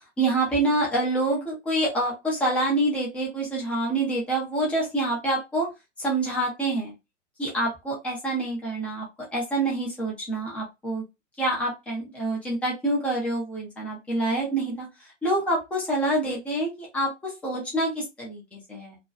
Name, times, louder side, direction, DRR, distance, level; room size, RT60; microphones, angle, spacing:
voice 1, 0.2-5.7 6.0-6.9 7.4-9.1 9.3-11.0 11.4-19.0, right 2 dB, 5° left, -4 dB, 0.3 m, -27 dB
2.5 x 2.2 x 2.2 m, 0.23 s
figure-of-eight pair, 105°, 38 cm